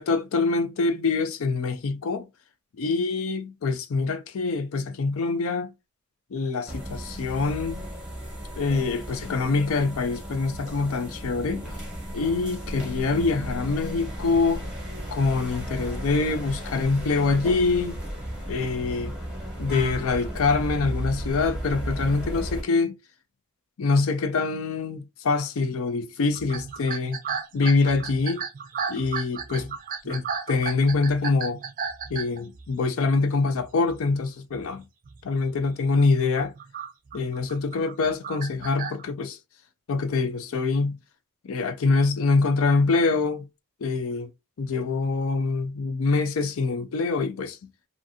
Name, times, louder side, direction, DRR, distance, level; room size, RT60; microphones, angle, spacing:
voice 1, 0.0-2.2 2.8-5.7 6.3-7.8 8.6-11.6 12.1-14.6 15.1-18.0 18.5-19.1 19.6-23.0 23.8-27.2 27.5-28.4 28.9-29.7 30.0-31.6 32.1-34.8 35.2-36.5 37.1-39.4 39.9-41.0 41.5-43.5 43.8-44.3 44.6-47.6, left 3 dB, 70° left, 0.4 m, -25 dB
sound 1, 6.7-22.6, equal, 5° right, 0.8 m, -34 dB
sound 2, 26.4-33.0 33.5-34.0 34.3-34.7 35.0-35.2 35.8-39.0, right 6 dB, 40° right, 0.4 m, -34 dB
2.5 x 2.5 x 2.6 m
head